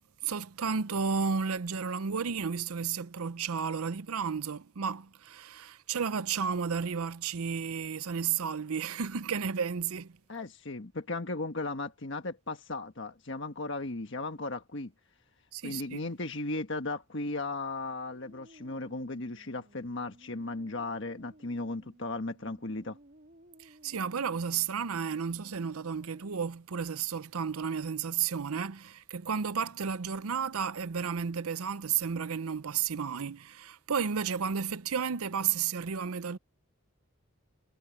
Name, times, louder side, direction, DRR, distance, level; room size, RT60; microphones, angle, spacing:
voice 1, 0.2-10.2 15.5-16.0 23.6-36.4, right 6 dB, 85° right, 0.6 m, -32 dB
voice 2, 10.3-14.9 15.6-23.0, left 2 dB, 55° left, 1.4 m, -36 dB
sound 1, 18.0-26.5, right 1 dB, 45° right, 3.1 m, -58 dB
head